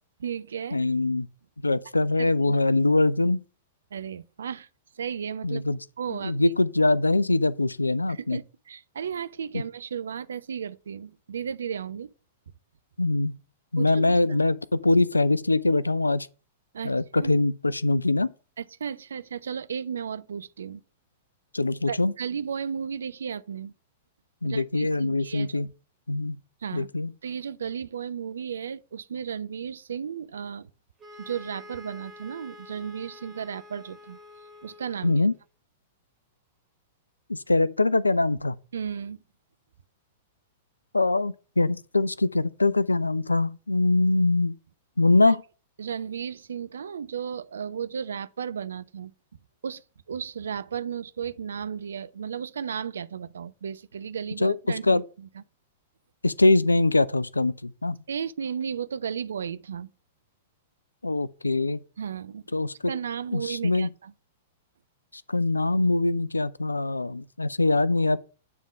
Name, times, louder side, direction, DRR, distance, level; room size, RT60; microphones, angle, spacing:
voice 1, 0.2-0.8 2.2-2.6 3.9-4.7 4.9-5.6 6.0-6.3 8.1-12.1 13.8-14.2 16.7-17.3 18.6-20.8 21.9-23.7 24.4-25.7 26.6-26.9 27.2-30.7 31.2-34.2 34.6-35.3 38.7-39.2 45.3-45.4 45.8-49.1 49.6-55.4 58.1-59.9 62.0-62.5 62.9-64.1, right 7 dB, 65° right, 0.5 m, -34 dB
voice 2, 0.7-1.3 1.6-3.4 5.4-5.8 6.1-8.4 9.5-9.6 13.0-13.4 13.7-16.3 16.8-18.3 21.5-22.1 24.4-25.7 26.1-26.4 26.7-27.1 35.0-35.3 37.3-38.5 40.9-44.6 45.0-45.4 54.4-54.5 54.8-55.0 56.2-58.0 61.0-61.8 62.5-62.7 63.3-63.9 65.1-68.2, left 2 dB, 80° left, 0.4 m, -23 dB
sound 1, 31.0-35.4, left 2 dB, 20° right, 2.0 m, -48 dB
9.3 x 3.6 x 7.0 m
figure-of-eight pair, 100°, 0 cm